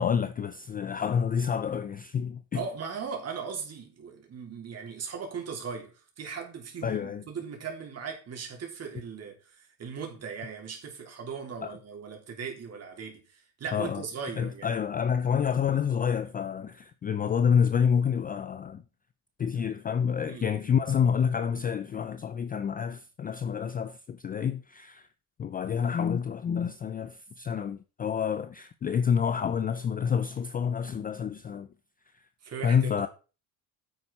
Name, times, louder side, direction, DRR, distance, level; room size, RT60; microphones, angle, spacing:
voice 1, 0.0-2.6 6.8-7.2 11.6-11.8 13.7-14.0 14.4-18.8 19.4-25.1 25.4-31.7 32.6-33.1, left 7 dB, 20° left, 0.4 m, -28 dB
voice 2, 2.5-14.7 20.3-20.5 32.4-33.1, right 6 dB, 35° right, 3.9 m, -38 dB
9.8 x 8.2 x 4.2 m
cardioid pair, 125°, 41 cm